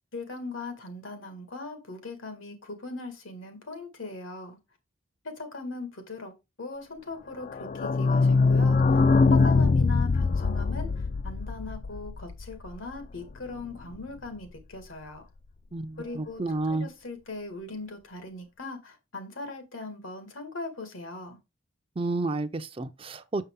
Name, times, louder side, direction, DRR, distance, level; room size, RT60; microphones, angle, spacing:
voice 1, 0.1-4.6 5.2-6.3 6.6-9.0 9.3-15.3 16.0-21.4, left 3 dB, 85° left, 1.9 m, -39 dB
sound 1, 7.4-13.0 13.3-13.4 13.6-13.7 13.9-14.0, left 4 dB, 40° left, 0.3 m, -23 dB
voice 2, 15.7-16.9 22.0-23.5, right 2 dB, 25° right, 0.4 m, -31 dB
6.4 x 5.5 x 3.6 m
head